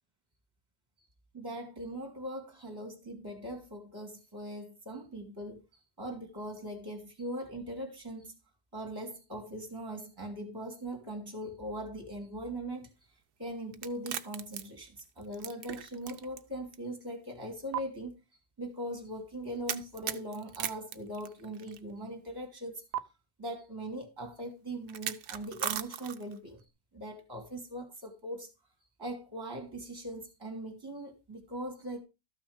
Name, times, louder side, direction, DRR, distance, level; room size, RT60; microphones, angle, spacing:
voice 1, 1.3-5.6 6.0-8.4 8.7-12.9 13.4-18.1 18.6-22.8 23.4-26.6 26.9-28.5 29.0-32.0, right 1 dB, 15° right, 2.7 m, -40 dB
sound 1, 13.7-16.4 16.7-16.8 17.7-17.8 19.7-21.8 22.9-23.0 24.9-26.4, right 10 dB, 80° right, 1.4 m, -37 dB
13.5 x 6.2 x 5.1 m
omnidirectional pair, 1.7 m